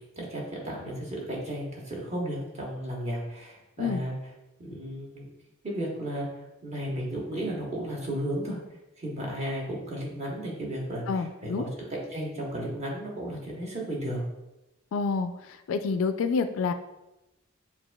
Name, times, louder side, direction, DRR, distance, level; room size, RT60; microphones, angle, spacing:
voice 1, 0.2-4.1 4.6-5.3 5.6-8.6 9.0-14.2, right 1 dB, 30° right, -3 dB, 1.0 m, -34 dB
voice 2, 11.1-11.7 14.9-15.3 15.7-16.7, left 5 dB, 75° left, 9 dB, 0.3 m, -27 dB
7.0 x 2.5 x 2.2 m, 0.95 s
head